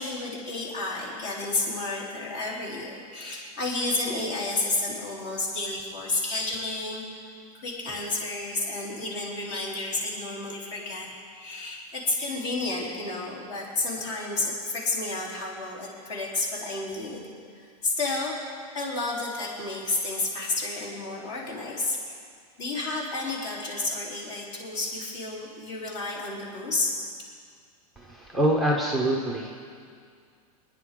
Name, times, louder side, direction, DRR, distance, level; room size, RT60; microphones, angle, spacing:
voice 1, 0.0-7.0 7.5-11.1 11.3-17.3 17.6-18.5 18.7-22.2 22.6-27.0, left 2 dB, 50° left, -3 dB, 3.5 m, -31 dB
voice 2, 28.0-29.5, right 1 dB, ahead, -2 dB, 0.7 m, -25 dB
25.0 x 10.0 x 3.7 m, 2.2 s
supercardioid pair, 175°, 20 cm